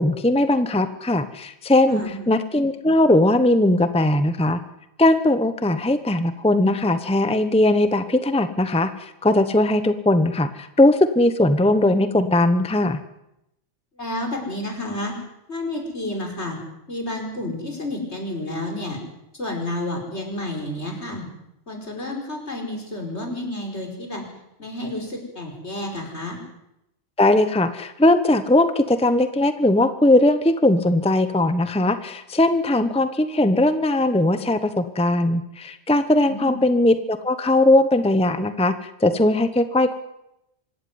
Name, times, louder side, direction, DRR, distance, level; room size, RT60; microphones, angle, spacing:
voice 1, 0.0-4.6 5.0-13.0 27.2-40.0, left 1 dB, 5° left, 10 dB, 0.9 m, -19 dB
voice 2, 1.9-2.2 14.0-15.1 15.5-16.6 16.9-19.0 19.3-21.3 21.7-24.2 24.6-26.4 36.3-36.6, left 1 dB, 65° left, 2 dB, 5.6 m, -30 dB
25.5 x 14.0 x 9.5 m, 0.85 s
omnidirectional pair, 1.2 m